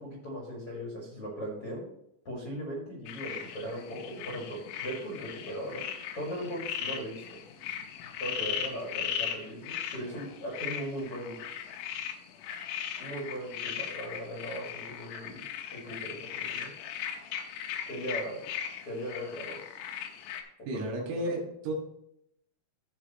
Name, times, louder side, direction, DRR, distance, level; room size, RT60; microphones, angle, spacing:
voice 1, 0.0-1.9 2.2-5.9 6.1-7.2 8.2-11.5 13.0-15.4 15.7-16.7 17.9-18.4 18.9-19.6 20.7-21.4, equal, 45° left, -3 dB, 1.9 m, -38 dB
sound 1, 3.1-20.4, left 9 dB, 80° left, 3.2 m, -38 dB
voice 2, 20.7-21.7, right 1 dB, 85° right, 0 dB, 4.4 m, -33 dB
15.0 x 5.2 x 2.9 m, 0.77 s
omnidirectional pair, 5.9 m